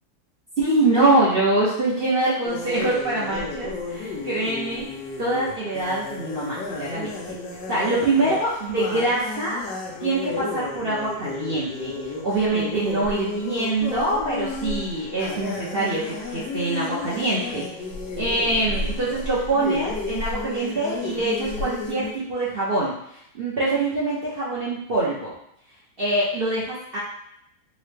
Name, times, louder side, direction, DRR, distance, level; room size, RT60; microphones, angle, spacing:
voice 1, 0.6-4.9 5.2-7.4 7.7-9.6 10.0-17.6 18.2-22.9 23.3-25.3 26.0-27.0, right 2 dB, 70° right, -8 dB, 0.5 m, -24 dB
sound 1, 2.4-22.1, left 3 dB, 75° left, 1.2 m, -32 dB
3.8 x 2.1 x 3.2 m, 0.74 s
omnidirectional pair, 2.0 m